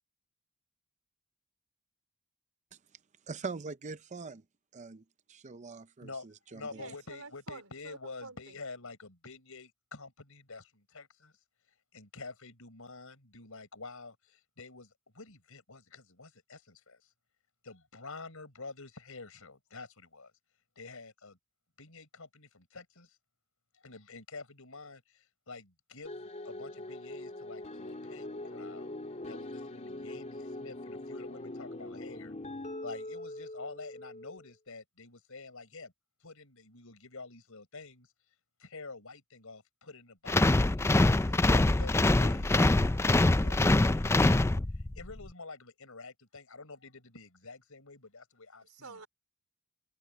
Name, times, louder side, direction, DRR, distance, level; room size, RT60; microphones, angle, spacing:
voice 1, 3.3-4.4 4.7-6.9, right 4 dB, 35° right, 0.6 m, -43 dB
voice 2, 6.0-11.3 11.9-17.1 17.6-20.3 20.8-21.4 21.8-23.2 23.7-28.9 29.3-32.3 32.8-35.9 36.2-38.1 38.6-40.4 40.7-44.5 44.7-49.0, left 3 dB, 70° left, 6.1 m, -48 dB
voice 3, 6.7-8.6 48.6-49.1, right 3 dB, 80° right, 4.2 m, -49 dB
sound 1, 26.0-34.5, left 1 dB, 35° left, 2.8 m, -42 dB
sound 2, 40.3-45.0, left 2 dB, 10° left, 0.4 m, -24 dB
head